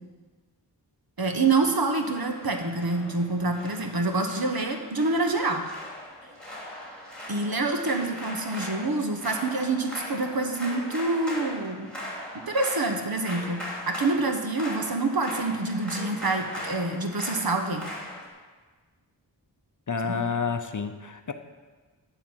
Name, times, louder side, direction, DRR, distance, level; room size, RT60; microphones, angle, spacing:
voice 1, 1.2-5.7 7.3-11.9 12.5-17.9 20.1-20.2, right 3 dB, 55° right, 4 dB, 1.2 m, -27 dB
sound 1, 1.4-18.3, left 1 dB, ahead, 3.0 m, -39 dB
voice 2, 19.9-21.3, left 5 dB, 45° left, 8 dB, 0.7 m, -29 dB
11.5 x 4.1 x 7.8 m, 1.4 s
wide cardioid pair, 55°, 44 cm